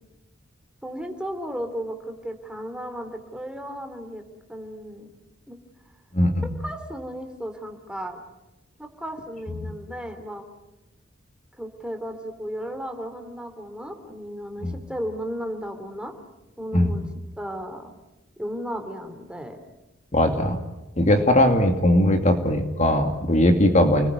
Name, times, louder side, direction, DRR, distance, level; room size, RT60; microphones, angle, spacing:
voice 1, 0.8-4.2 4.5-5.1 5.5-5.6 6.6-8.2 8.8-10.4 11.6-16.1 16.6-17.1 17.4-17.9 18.4-19.6 21.5-21.7, equal, 5° right, 5 dB, 3.2 m, -34 dB
voice 2, 6.1-6.5 9.6-9.7 14.6-14.8 16.7-16.9 20.1-20.6 21.0-24.1, left 1 dB, 35° left, 5 dB, 2.4 m, -19 dB
30.0 x 20.5 x 9.6 m, 0.98 s
head